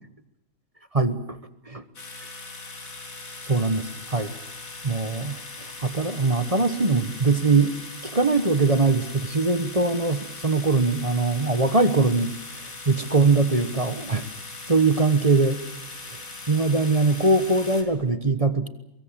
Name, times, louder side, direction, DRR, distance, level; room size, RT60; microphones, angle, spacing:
voice 1, 0.9-1.4 1.7-1.8 3.4-4.3 4.8-5.4 5.8-7.7 8.0-12.3 12.6-14.3 14.7-15.6 16.1-16.2 16.5-18.7, right 3 dB, 25° right, 11 dB, 1.2 m, -22 dB
sound 1, 2.0-17.8, left 3 dB, 85° left, 3.4 m, -40 dB
24.0 x 23.0 x 7.5 m, 0.84 s
omnidirectional pair, 1.4 m